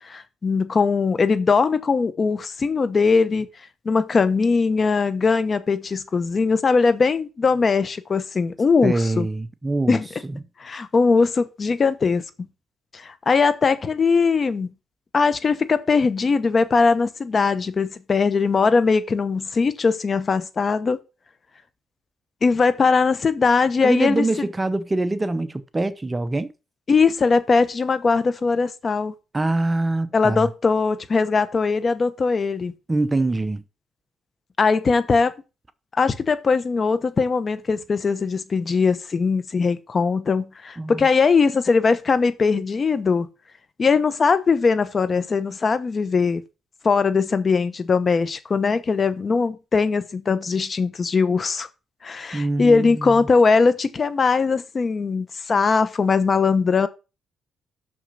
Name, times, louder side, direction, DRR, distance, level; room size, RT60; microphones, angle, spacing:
voice 1, 0.0-3.5 3.8-9.3 9.9-10.1 10.6-12.5 12.9-14.7 15.1-21.0 22.4-24.3 26.9-29.1 30.1-32.7 34.6-35.3 36.0-43.3 43.8-46.4 46.8-51.7 52.0-56.9, left 4 dB, 40° left, 1.0 m, -20 dB
voice 2, 8.8-10.4 23.8-26.5 29.3-30.5 32.9-33.6 40.8-41.1 52.3-53.2, right 2 dB, 20° right, 0.8 m, -24 dB
6.4 x 6.1 x 5.5 m
cardioid pair, 90°, 0 cm